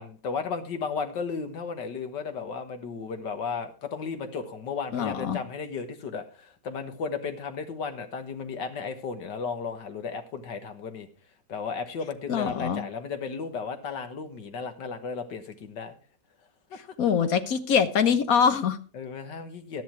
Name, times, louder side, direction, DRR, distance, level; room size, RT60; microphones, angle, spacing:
voice 1, 0.0-11.1 11.5-16.0 16.7-16.8 18.9-19.8, left 5 dB, 85° left, 7 dB, 2.1 m, -34 dB
voice 2, 4.9-5.4 12.3-12.8 17.0-18.8, left 7 dB, 60° left, 11 dB, 1.3 m, -23 dB
12.5 x 10.5 x 4.5 m, 0.36 s
omnidirectional pair, 1.8 m